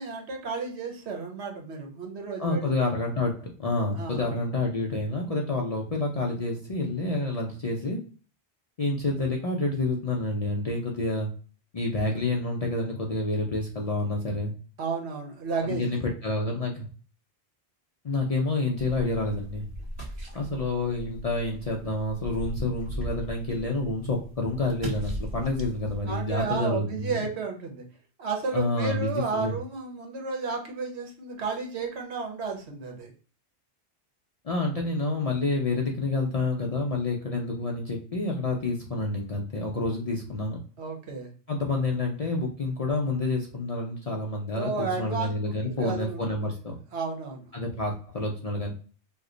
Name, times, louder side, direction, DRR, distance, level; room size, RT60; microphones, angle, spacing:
voice 1, 0.0-2.7 4.0-4.3 14.8-15.9 26.1-27.8 28.2-33.1 40.8-41.3 44.5-46.2 46.9-47.5, right 4 dB, 70° right, 2 dB, 1.1 m, -32 dB
voice 2, 2.4-8.0 8.8-11.3 11.7-14.5 15.6-16.9 18.0-19.6 20.3-27.2 28.5-29.5 34.4-40.6 41.5-46.8 47.5-48.7, left 2 dB, 45° left, 0 dB, 0.5 m, -28 dB
sound 1, 18.8-26.6, equal, 20° right, 1.3 m, -38 dB
3.0 x 2.1 x 3.7 m, 0.39 s
omnidirectional pair, 1.2 m